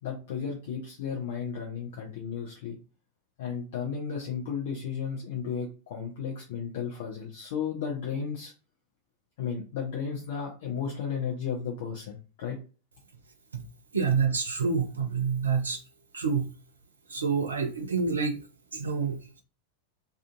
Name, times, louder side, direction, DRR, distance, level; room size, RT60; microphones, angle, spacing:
voice 1, 0.0-2.8 3.4-8.5 9.4-12.6, left 6 dB, 55° left, 0.7 m, -34 dB
voice 2, 13.9-15.8 16.1-16.5 17.1-18.4 18.7-19.2, right 5 dB, 70° right, 0.5 m, -27 dB
2.4 x 2.4 x 2.5 m
figure-of-eight pair, 90°, 0 cm